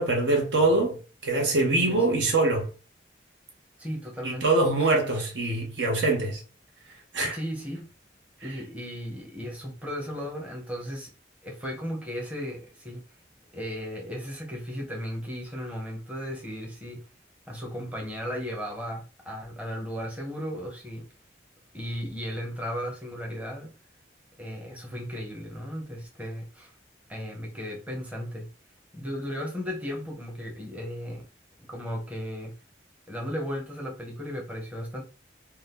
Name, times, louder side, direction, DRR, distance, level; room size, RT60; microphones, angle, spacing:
voice 1, 0.0-2.7 4.2-6.4 7.1-7.4 8.4-8.6, right 2 dB, 75° right, 0.9 m, -24 dB
voice 2, 1.8-2.2 3.8-4.4 4.8-4.9 7.2-7.9 8.4-11.1 11.4-13.0 13.5-17.0 17.5-21.1 21.7-23.7 24.4-26.7 27.1-28.5 28.9-31.2 31.6-32.5 33.1-35.0, equal, 10° right, 0.8 m, -35 dB
2.8 x 2.3 x 3.4 m
head